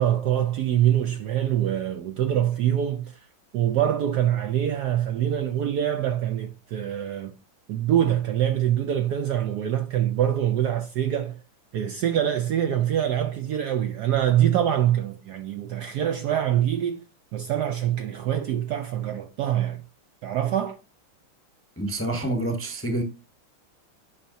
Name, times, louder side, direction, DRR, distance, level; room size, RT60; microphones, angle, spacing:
voice 1, 0.0-3.3 3.5-7.3 7.7-11.4 11.7-17.0 17.3-19.8 20.2-20.8, right 10 dB, 75° right, 1.0 m, -24 dB
voice 2, 21.8-23.0, right 1 dB, 10° left, 0.6 m, -27 dB
10.0 x 5.6 x 2.6 m
omnidirectional pair, 2.2 m